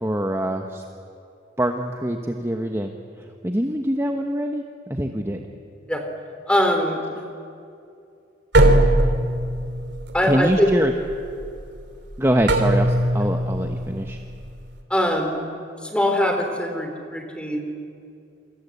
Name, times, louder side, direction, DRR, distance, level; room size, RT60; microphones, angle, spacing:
voice 1, 0.0-0.8 1.6-2.9 3.4-5.4 10.2-10.9 12.2-14.2, right 1 dB, 15° right, 4 dB, 1.1 m, -24 dB
voice 2, 6.5-7.0 10.1-10.7 14.9-15.4 15.8-17.6, left 1 dB, 5° left, 4 dB, 3.3 m, -22 dB
sound 1, 8.5-14.8, right 1 dB, 65° right, 2.9 m, -21 dB
28.5 x 23.5 x 8.4 m, 2.5 s
head